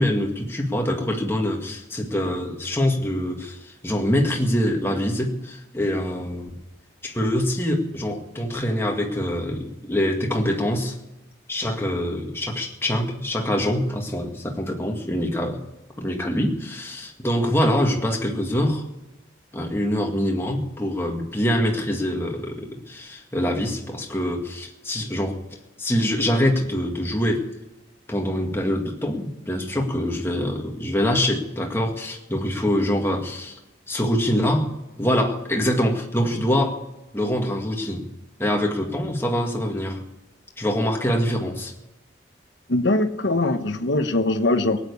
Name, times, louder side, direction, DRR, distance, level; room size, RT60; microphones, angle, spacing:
voice 1, 0.0-6.6 7.0-11.0 11.5-15.6 16.0-18.8 19.5-25.4 25.8-27.5 28.1-33.6 33.9-34.7 35.0-36.8 37.1-38.1 38.4-40.0 40.6-41.7, equal, 15° left, 1 dB, 2.1 m, -24 dB
voice 2, 42.7-44.8, left 2 dB, 75° left, 8 dB, 1.2 m, -22 dB
18.5 x 9.1 x 8.5 m, 0.98 s
head